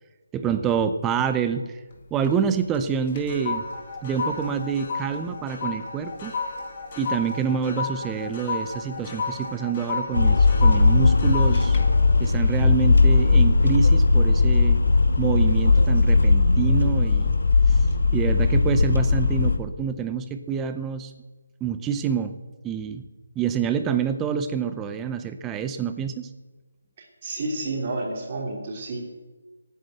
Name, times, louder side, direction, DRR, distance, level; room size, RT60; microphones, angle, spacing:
voice 1, 0.3-1.8 2.1-3.6 4.0-6.3 7.0-11.8 12.2-14.8 15.2-17.4 17.7-17.8 18.1-21.1 21.6-22.4 22.6-23.0 23.4-26.3, right 7 dB, 10° right, 10 dB, 0.6 m, -27 dB
sound 1, 1.9-2.4 2.7-13.3 13.8-14.1, left 4 dB, 25° left, 2.1 m, -33 dB
sound 2, 10.1-19.6, left 3 dB, 85° left, 1.5 m, -18 dB
voice 2, 27.2-29.0, right 2 dB, 25° right, -1 dB, 3.3 m, -30 dB
17.0 x 9.3 x 8.0 m, 1.3 s
hypercardioid pair, 170°, 0 cm